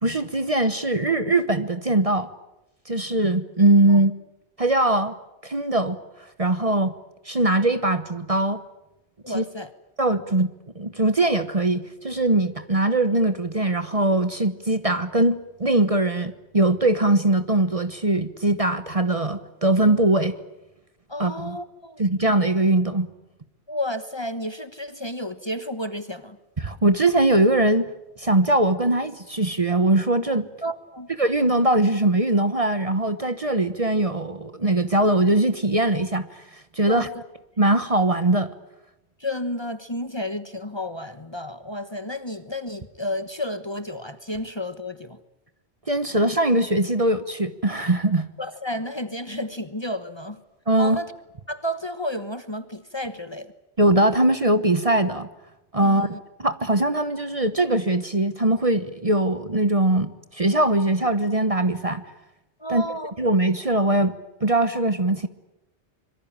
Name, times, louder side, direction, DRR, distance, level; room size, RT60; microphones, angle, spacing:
voice 1, 0.0-2.3 2.9-4.1 4.6-5.1 5.4-6.0 6.4-6.9 7.2-8.6 9.3-9.4 10.0-20.4 21.2-21.6 22.0-23.1 26.6-27.9 28.2-30.5 31.2-36.4 36.7-37.1 37.6-38.5 45.9-48.3 50.7-51.0 53.8-55.3 55.7-62.0 62.7-62.8 63.2-65.3, right 1 dB, 30° right, 11 dB, 1.2 m, -21 dB
voice 2, 9.2-9.7 21.1-22.0 23.7-26.4 30.6-31.1 36.9-37.2 39.2-45.2 48.4-50.4 50.8-51.1 51.5-53.5 55.8-56.2 62.6-63.1, left 1 dB, 25° left, 11 dB, 1.2 m, -31 dB
25.5 x 23.5 x 8.9 m, 0.93 s
omnidirectional pair, 1.2 m